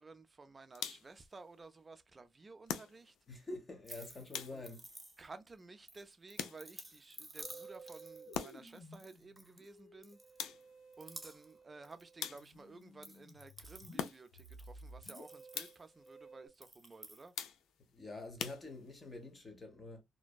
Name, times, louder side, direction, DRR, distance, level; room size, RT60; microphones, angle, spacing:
voice 1, 0.0-3.1 4.5-4.6 5.2-10.2 11.0-17.3, right 3 dB, 25° right, 0.4 m, -54 dB
sound 1, 0.7-1.3 2.7-3.3 4.3-4.9 6.4-7.0 8.3-8.8 10.4-10.9 12.2-12.8 14.0-14.5 15.5-16.0 17.4-17.9 18.4-19.1, left 8 dB, 80° left, 0.3 m, -43 dB
voice 2, 3.3-4.8 17.9-20.0, left 2 dB, 30° left, 0.8 m, -47 dB
sound 2, 3.8-5.5 5.9-9.7 10.0-10.6 10.9-11.6 11.8-12.5 12.8-16.1 16.5-17.3, right 1 dB, 5° right, 0.7 m, -53 dB
Musical instrument, 7.4-16.5, right 1 dB, 65° left, 1.4 m, -55 dB
2.5 x 2.1 x 2.3 m
cardioid pair, 90°, 0 cm